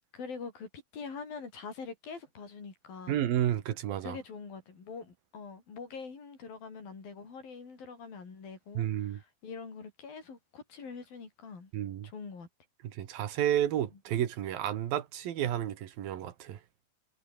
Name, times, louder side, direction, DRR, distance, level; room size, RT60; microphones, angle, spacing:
voice 1, 0.1-3.2 4.0-11.7 12.0-12.5, left 5 dB, 80° left, 7.3 m, -44 dB
voice 2, 3.1-4.2 8.8-9.2 11.7-12.1 12.8-16.6, right 11 dB, 80° right, 3.5 m, -31 dB
omnidirectional pair, 4.1 m